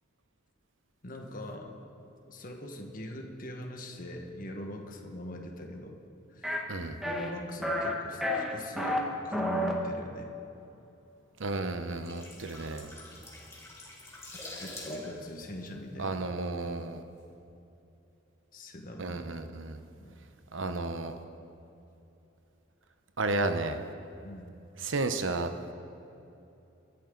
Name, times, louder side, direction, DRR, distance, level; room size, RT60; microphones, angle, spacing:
voice 1, 1.0-1.7 2.3-6.0 6.3-6.6 7.0-10.3 13.1-13.2 14.6-16.2 16.8-16.9 18.5-19.2 20.0-20.1 24.2-24.5, left 1 dB, 45° left, 2 dB, 1.6 m, -42 dB
sound 1, 6.4-6.6 7.0-7.3 7.6-7.9 8.2-9.0 9.3-9.7, left 1 dB, ahead, 1.5 m, -30 dB
voice 2, 11.4-12.9 16.0-17.0 19.0-19.8 20.5-21.2 23.2-23.8 24.8-25.5, right 2 dB, 80° right, 8 dB, 1.0 m, -32 dB
sound 2, 11.8-16.6 16.9-17.1, left 1 dB, 15° left, 2.8 m, -45 dB
24.0 x 11.5 x 4.0 m, 2.9 s
head